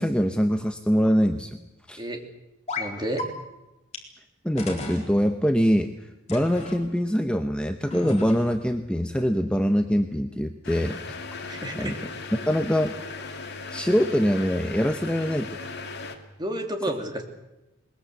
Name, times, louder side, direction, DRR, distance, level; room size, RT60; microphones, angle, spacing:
voice 1, 0.0-1.6 1.9-2.0 4.4-5.9 6.3-11.0 11.8-11.9 12.5-12.9 13.7-15.5, equal, 5° left, 6 dB, 0.9 m, -23 dB
sound 1, 2.7-2.9 3.2-3.3 3.9-4.0 4.6-5.1 6.3-6.8 7.9-8.6, left 2 dB, 35° left, 4.0 m, -34 dB
voice 2, 2.8-3.3 11.4-12.0 16.4-17.2, right 1 dB, 20° right, 3 dB, 3.0 m, -31 dB
sound 2, 10.6-16.2, left 3 dB, 55° left, 2.5 m, -37 dB
21.0 x 21.0 x 8.2 m, 0.98 s
head